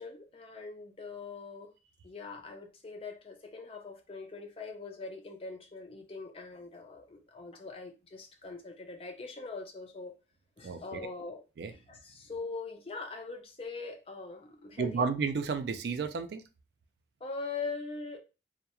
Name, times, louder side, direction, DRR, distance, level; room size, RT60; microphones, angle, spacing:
voice 1, 0.0-1.7 2.0-10.1 10.6-11.4 11.7-15.1 17.2-18.2, left 4 dB, 30° left, 0.4 m, -42 dB
voice 2, 10.6-11.1 11.6-11.7 14.8-16.4, right 5 dB, 65° right, 0.3 m, -32 dB
2.3 x 2.1 x 2.9 m
head